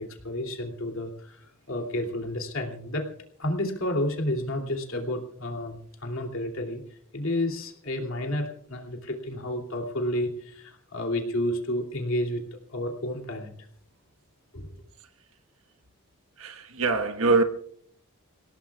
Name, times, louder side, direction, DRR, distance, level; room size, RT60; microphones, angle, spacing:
voice 1, 0.0-3.0 3.4-12.4 12.7-13.5 14.5-14.7, left 1 dB, 60° left, 2 dB, 2.9 m, -31 dB
voice 2, 16.4-17.4, right 3 dB, 70° right, 7 dB, 1.4 m, -23 dB
28.0 x 17.5 x 2.4 m, 0.62 s
head